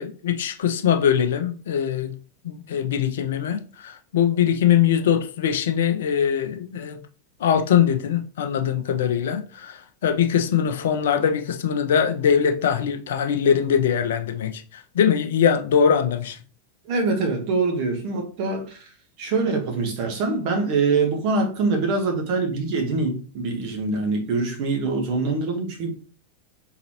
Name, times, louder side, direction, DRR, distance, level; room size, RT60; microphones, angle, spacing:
voice 1, 0.0-2.1 2.4-7.0 7.4-16.4, left 8 dB, 60° left, 0.6 m, -22 dB
voice 2, 16.9-18.8 19.2-25.9, right 3 dB, 45° right, 1.4 m, -24 dB
4.0 x 3.8 x 3.0 m
figure-of-eight pair, 90°, 0 cm